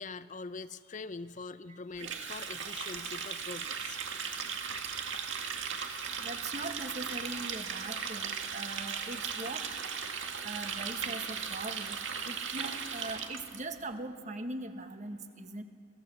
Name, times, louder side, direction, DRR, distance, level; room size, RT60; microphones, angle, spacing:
voice 1, 0.0-4.0, left 4 dB, 40° left, 13 dB, 0.6 m, -43 dB
Water tap faucet, 2.0-13.6, right 6 dB, 75° right, 2.0 m, -37 dB
voice 2, 6.2-9.6 10.4-12.0 12.3-15.6, right 2 dB, 40° right, 6 dB, 1.6 m, -41 dB
26.5 x 17.0 x 7.7 m, 2.4 s
head